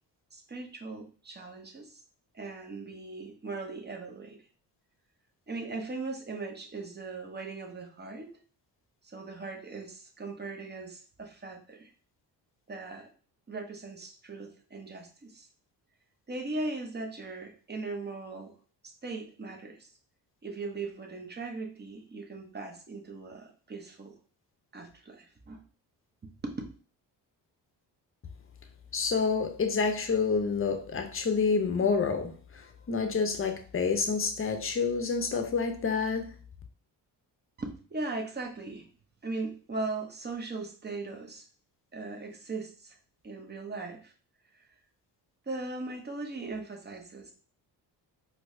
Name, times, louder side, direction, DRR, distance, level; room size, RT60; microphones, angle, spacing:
voice 1, 0.3-2.0 2.3-4.4 5.5-8.4 9.0-11.9 12.7-13.1 13.5-15.4 16.3-18.6 18.8-19.9 20.4-24.2 24.7-25.6 26.2-26.5 37.6-38.9 39.2-41.4 41.9-43.0 43.2-44.1 45.5-47.3, right 3 dB, 25° right, 0.8 m, -39 dB
voice 2, 28.9-36.3, left 5 dB, 30° left, 0.7 m, -28 dB
4.4 x 2.2 x 2.6 m
supercardioid pair, 65°, 43 cm